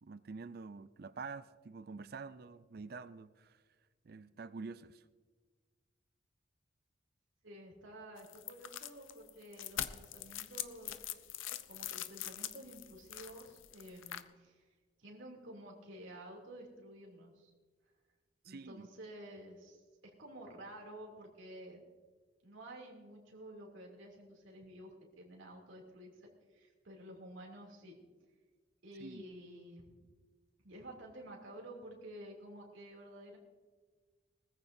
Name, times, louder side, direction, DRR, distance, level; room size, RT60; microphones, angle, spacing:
voice 1, 0.0-3.6 4.0-5.0 18.4-18.9 29.0-29.2, right 4 dB, 50° right, 0.4 m, -47 dB
voice 2, 7.4-11.0 11.7-14.7 15.0-17.5 18.4-19.8 20.2-21.8 22.4-28.0 28.8-30.0 30.6-33.4, right 1 dB, 80° right, 2.8 m, -51 dB
sound 1, 8.2-14.2, left 12 dB, 85° left, 0.6 m, -43 dB
20.0 x 14.0 x 2.7 m
head